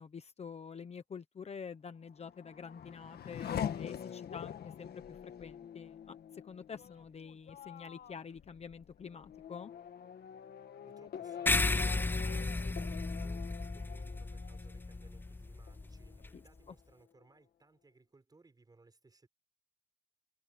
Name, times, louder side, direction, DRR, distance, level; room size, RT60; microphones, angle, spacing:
voice 1, 0.0-9.7 16.3-16.4, left 6 dB, 40° left, 1.2 m, -47 dB
Race car auto racing / Accelerating revving vroom, 2.0-15.3 15.7-16.4, left 8 dB, 65° left, 1.7 m, -45 dB
voice 2, 10.8-19.3, right 3 dB, 20° right, 6.8 m, -63 dB
sound 1, 11.5-16.3, left 2 dB, 10° left, 0.6 m, -34 dB
cardioid pair, 135°, 17 cm